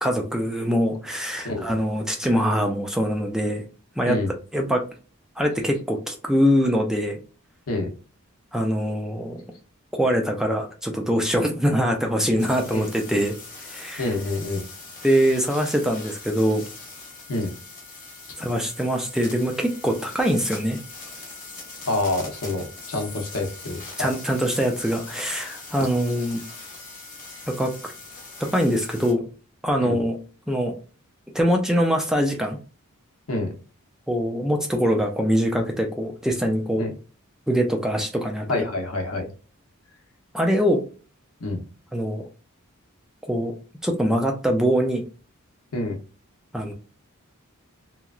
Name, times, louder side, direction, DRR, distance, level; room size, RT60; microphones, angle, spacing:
voice 1, 0.0-3.6 4.0-4.2 4.5-4.8 5.4-7.2 8.5-9.4 9.9-13.3 13.6-14.1 15.0-16.7 18.4-20.8 24.0-26.4 27.5-27.9 28.4-29.3 29.6-30.2 30.5-30.7 31.3-32.6 34.1-36.8 37.5-38.6 40.3-40.8 41.9-42.3 43.3-43.5 43.8-45.0 46.5-46.7, equal, ahead, 3 dB, 0.3 m, -23 dB
sound 1, 12.4-29.1, left 3 dB, 40° left, 1.0 m, -41 dB
voice 2, 14.0-14.6 17.3-17.5 21.9-24.1 29.8-30.0 33.3-33.5 36.8-36.9 38.5-39.3 41.4-41.6 45.7-46.0, left 2 dB, 75° left, 4 dB, 0.7 m, -27 dB
2.9 x 2.3 x 2.4 m, 0.36 s
head